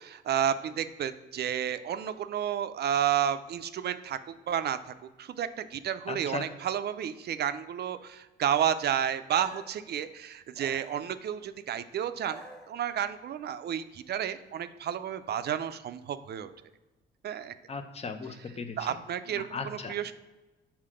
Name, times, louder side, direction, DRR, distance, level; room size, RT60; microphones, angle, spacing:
voice 1, 0.0-4.8 5.2-12.4 12.7-16.5 17.2-17.5 18.8-20.1, right 9 dB, 55° right, 11 dB, 0.4 m, -31 dB
voice 2, 6.1-6.5 17.7-18.8 19.3-20.0, left 4 dB, 30° left, 8 dB, 0.7 m, -37 dB
sound 1, 9.3-9.8 10.5-11.5 12.1-13.1, right 2 dB, ahead, 1.2 m, -50 dB
5.7 x 4.3 x 5.0 m, 1.1 s
cardioid pair, 90°, 20 cm